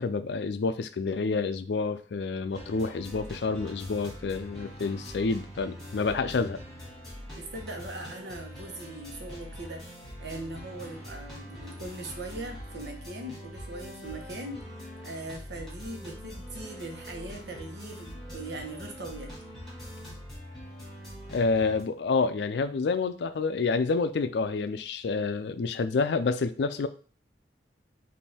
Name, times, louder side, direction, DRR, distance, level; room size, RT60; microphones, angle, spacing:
voice 1, 0.0-6.6 21.3-26.9, left 4 dB, 70° left, 10 dB, 0.4 m, -28 dB
sound 1, 2.5-21.8, equal, 5° left, 1.9 m, -43 dB
voice 2, 7.3-9.9 10.2-19.3, right 2 dB, 75° right, 3 dB, 1.1 m, -40 dB
5.2 x 2.7 x 3.4 m, 0.38 s
head